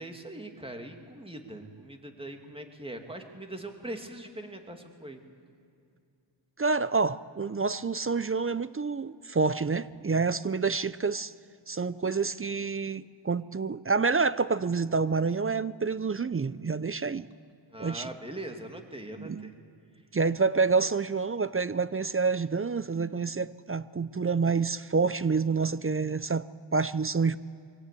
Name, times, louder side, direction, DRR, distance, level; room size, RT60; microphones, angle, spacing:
voice 1, 0.0-5.2 17.7-19.6, right 1 dB, 10° right, 2.6 m, -41 dB
voice 2, 6.6-11.3 11.7-17.3 17.8-18.1 19.2-19.5 20.1-26.4 26.7-27.4, right 4 dB, 30° right, 0.5 m, -28 dB
24.0 x 17.0 x 8.5 m
cardioid pair, 50°, 45 cm